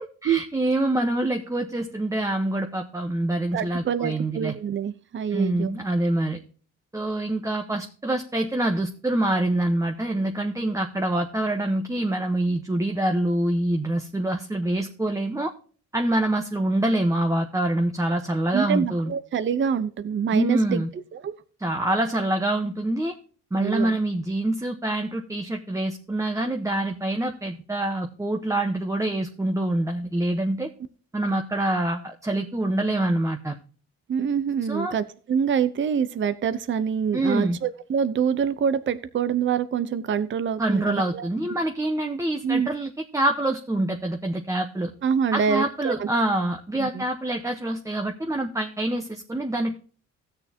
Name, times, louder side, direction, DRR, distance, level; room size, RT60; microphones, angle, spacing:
voice 1, 0.0-4.5 5.3-6.4 6.9-15.5 15.9-19.1 20.3-20.9 21.6-23.1 23.5-30.7 31.1-33.5 34.7-34.9 37.1-37.6 40.6-44.9 45.3-49.8, right 1 dB, 10° right, 4 dB, 1.0 m, -25 dB
voice 2, 3.5-5.7 18.5-20.8 21.1-21.3 23.6-24.0 34.1-41.3 42.4-42.7 45.0-46.1 46.8-47.0, right 7 dB, 40° right, 12 dB, 0.7 m, -25 dB
16.0 x 6.7 x 2.8 m, 0.41 s
cardioid pair, 90°, 30 cm